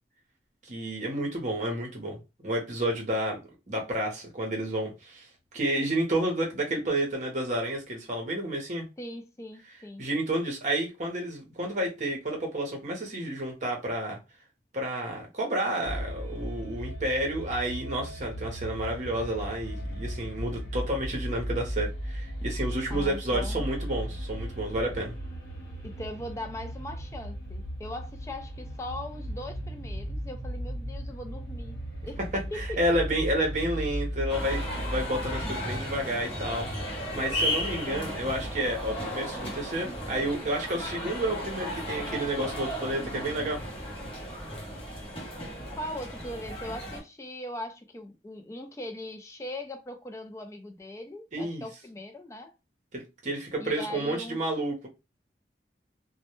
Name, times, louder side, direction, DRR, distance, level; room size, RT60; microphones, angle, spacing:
voice 1, 0.7-2.2 2.4-3.4 3.7-5.3 5.5-8.9 10.0-14.2 14.7-25.2 32.5-36.7 37.1-43.6 51.3-51.6 52.9-54.9, right 1 dB, 45° right, 0.7 m, -30 dB
voice 2, 9.0-10.1 22.9-23.7 25.8-31.8 32.1-32.2 32.5-32.8 37.8-38.2 45.7-52.5 53.6-54.4, left 1 dB, 15° left, 0.3 m, -40 dB
sound 1, 15.8-35.4, equal, 55° left, 1.0 m, -36 dB
sound 2, 34.3-47.0, equal, 30° left, 0.7 m, -35 dB
2.1 x 2.1 x 2.9 m
head